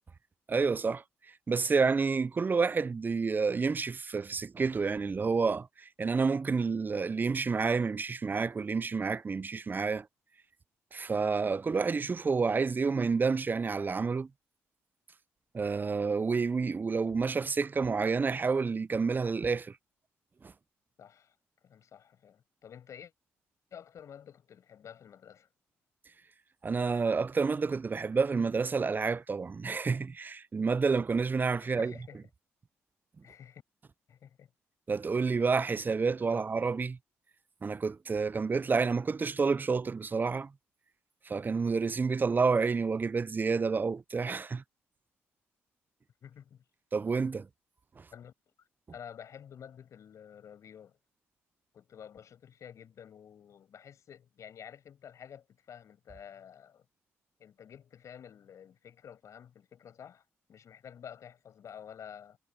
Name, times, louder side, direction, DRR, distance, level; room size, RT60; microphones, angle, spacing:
voice 1, 0.5-1.0 1.5-10.1 10.9-14.3 15.5-19.7 26.6-31.9 34.9-37.0 37.6-40.5 41.3-44.6 46.9-47.5, right 4 dB, 35° right, 0.5 m, -29 dB
voice 2, 21.0-21.3 21.6-23.1 23.7-25.5 31.6-32.2 33.2-33.6 34.1-34.5 35.1-35.3 36.3-36.5 46.2-46.6 48.1-48.3 48.9-51.0 51.7-56.8 57.4-62.4, left 8 dB, 65° left, 7.3 m, -50 dB
supercardioid pair, 50°, 6 cm